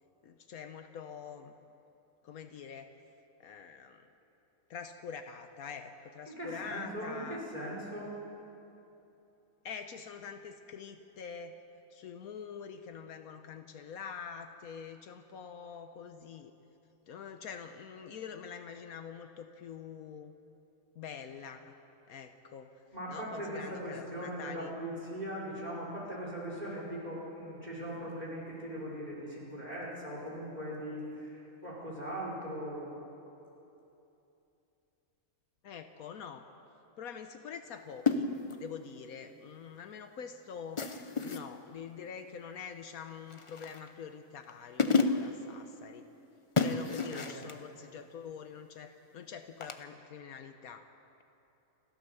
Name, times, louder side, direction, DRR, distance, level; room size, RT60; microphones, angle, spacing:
voice 1, 0.2-1.5 2.2-2.9 3.4-4.1 4.7-7.4 9.6-11.6 11.9-16.5 17.1-20.3 20.9-21.8 22.1-22.8 23.1-24.7 35.6-36.4 37.0-38.3 38.6-40.8 41.2-46.1 46.6-50.9, left 7 dB, 75° left, 7 dB, 1.3 m, -45 dB
voice 2, 6.3-8.1 22.9-32.9 47.1-47.4, right 1 dB, 30° right, -4 dB, 5.1 m, -40 dB
sound 1, 38.1-38.7 40.8-41.5 43.3-43.9 44.5-44.6 44.8-45.4 46.6-47.6 49.6-49.8, left 4 dB, 30° left, 0.7 m, -30 dB
29.0 x 13.0 x 6.9 m, 2.9 s
omnidirectional pair, 1.5 m